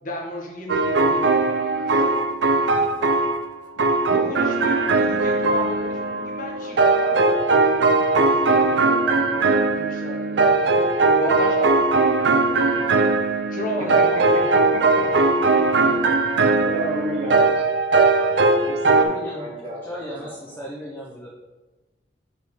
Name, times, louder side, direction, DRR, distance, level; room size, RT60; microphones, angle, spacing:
voice 1, 0.0-2.0 4.1-10.9 11.2-13.0 13.5-14.6 15.1-15.4, left 1 dB, 45° left, -2 dB, 1.1 m, -34 dB
sound 1, 0.7-3.5 3.8-19.1, right 3 dB, 70° right, 0.5 m, -19 dB
voice 2, 14.5-15.9 16.2-17.6 18.6-20.6, right 1 dB, 30° right, -2 dB, 1.2 m, -33 dB
voice 3, 19.0-19.5 19.8-21.3, equal, 10° left, -3 dB, 0.6 m, -36 dB
5.2 x 4.2 x 4.9 m, 1.2 s
head